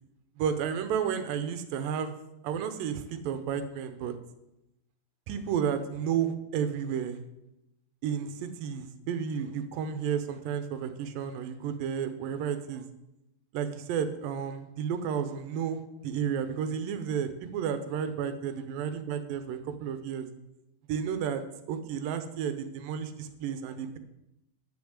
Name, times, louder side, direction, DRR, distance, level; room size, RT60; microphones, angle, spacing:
voice 1, 0.4-2.1 2.4-4.1 5.3-7.2 8.0-12.9 13.5-20.3 20.9-21.4 21.7-24.0, right 7 dB, 90° right, 10 dB, 2.7 m, -32 dB
10.5 x 7.1 x 8.1 m, 0.89 s
omnidirectional pair, 3.9 m